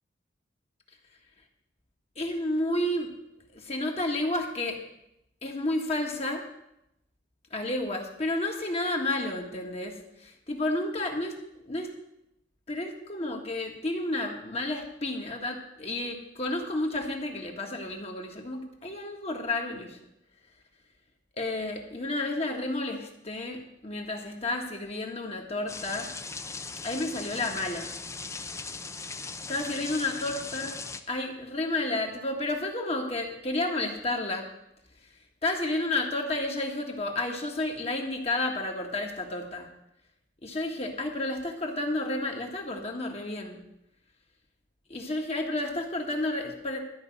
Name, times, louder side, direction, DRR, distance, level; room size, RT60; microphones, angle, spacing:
voice 1, 2.2-3.1 3.5-4.8 5.4-6.4 7.5-11.9 12.7-20.0 21.4-26.1 26.8-27.9 29.5-30.8 31.1-34.5 35.4-39.7 40.4-43.6 44.9-46.8, left 2 dB, 35° left, 1 dB, 1.7 m, -31 dB
sound 1, 25.7-31.0, left 4 dB, 15° left, 0.6 m, -39 dB
12.5 x 5.3 x 9.1 m, 0.81 s
head